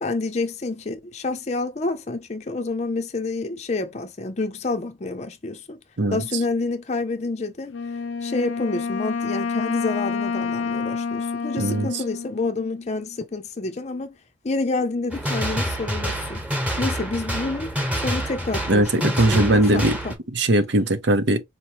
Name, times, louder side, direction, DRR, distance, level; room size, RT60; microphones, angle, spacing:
voice 1, 0.0-5.8 6.1-7.7 8.2-14.1 14.4-16.4 16.8-20.1, left 3 dB, 35° left, 0.5 m, -28 dB
Wind instrument woodwind instrument, 7.7-13.2, left 5 dB, 90° left, 0.5 m, -28 dB
voice 2, 11.6-11.9 18.7-20.0 20.3-21.4, right 1 dB, 70° right, 0.8 m, -19 dB
sound 1, 15.1-20.1, equal, 5° right, 1.1 m, -27 dB
4.4 x 3.0 x 3.0 m
head